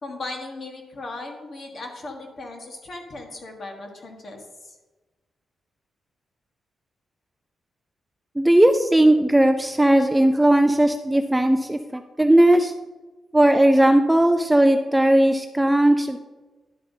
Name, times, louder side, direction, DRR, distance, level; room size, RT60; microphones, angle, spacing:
voice 1, 0.0-4.8, left 2 dB, 40° left, 2 dB, 1.4 m, -37 dB
voice 2, 8.4-12.7 13.3-16.2, right 1 dB, 5° right, 6 dB, 0.3 m, -17 dB
11.0 x 7.7 x 2.7 m, 1.2 s
wide cardioid pair, 170°, 0 cm